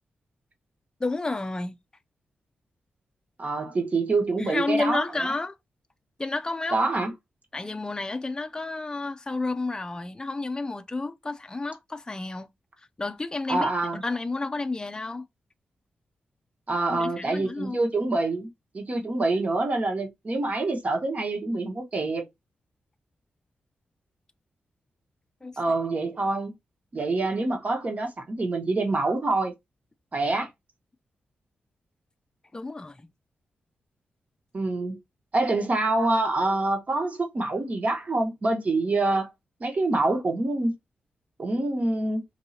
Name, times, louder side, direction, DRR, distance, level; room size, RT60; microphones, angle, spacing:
voice 1, 1.0-1.7 4.4-5.6 6.2-6.8 7.5-12.5 12.8-15.3 16.9-17.8 25.4-25.8 32.5-33.1, left 3 dB, 20° left, 0.4 m, -31 dB
voice 2, 3.4-5.0 6.7-7.1 13.5-14.0 16.7-18.5 18.7-22.3 25.6-26.5 26.9-29.5 30.1-30.5 34.5-35.0 35.3-39.3 39.6-40.7 41.4-42.2, right 2 dB, 45° right, 1.3 m, -26 dB
4.5 x 2.7 x 2.8 m
cardioid pair, 60°, 3 cm